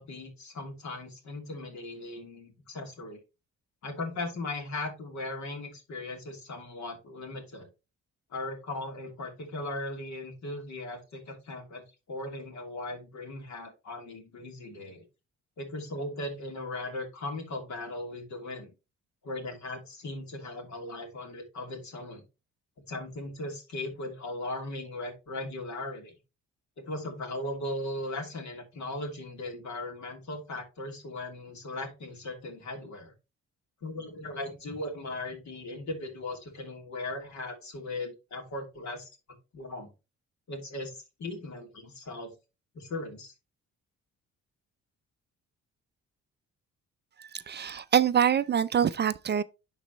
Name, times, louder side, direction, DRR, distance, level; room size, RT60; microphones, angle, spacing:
voice 1, 0.0-3.2 3.8-7.7 8.3-15.0 15.6-18.7 19.2-22.2 22.9-26.1 26.8-33.1 33.8-39.1 39.5-39.9 40.5-40.9 41.2-42.3 42.7-43.3, left 2 dB, 65° left, 2.9 m, -38 dB
voice 2, 47.2-49.4, right 8 dB, 35° right, 0.4 m, -25 dB
11.0 x 4.1 x 2.9 m
cardioid pair, 90°, 30 cm